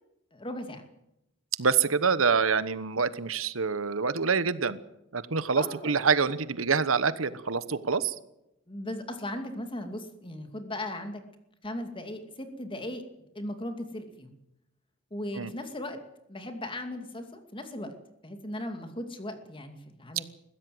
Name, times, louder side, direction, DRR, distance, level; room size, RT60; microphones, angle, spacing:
voice 1, 0.3-0.8 5.6-6.0 8.7-11.2 11.6-13.0 13.3-14.3 15.1-16.0 16.3-17.9 18.2-20.2, left 1 dB, 25° left, 7 dB, 2.5 m, -37 dB
voice 2, 1.6-4.8 5.1-8.2 15.3-15.5, right 5 dB, 85° right, 15 dB, 1.1 m, -26 dB
21.5 x 16.0 x 7.9 m, 0.87 s
head